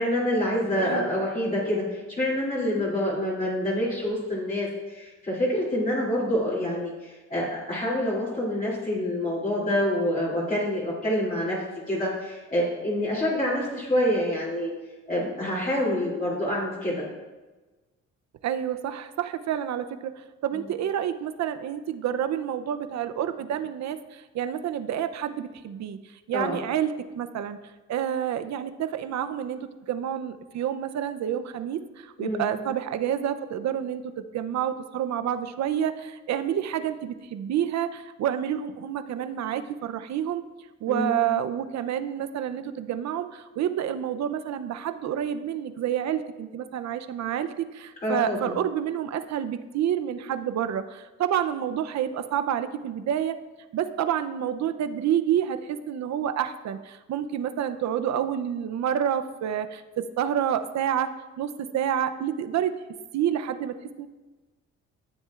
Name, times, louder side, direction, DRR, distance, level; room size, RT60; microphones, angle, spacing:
voice 1, 0.0-11.6 11.9-14.7 15.1-17.0 20.5-20.6 26.3-26.6 32.2-32.6 40.9-41.3 48.0-48.5, left 1 dB, 30° left, -7 dB, 2.7 m, -27 dB
voice 2, 0.8-1.1 15.7-16.0 18.4-27.6 27.9-29.6 29.9-40.4 40.8-53.4 53.7-61.1 61.4-62.7 63.1-64.1, right 9 dB, 65° right, 10 dB, 0.6 m, -29 dB
13.0 x 7.3 x 2.4 m, 1.2 s
cardioid pair, 90°, 30 cm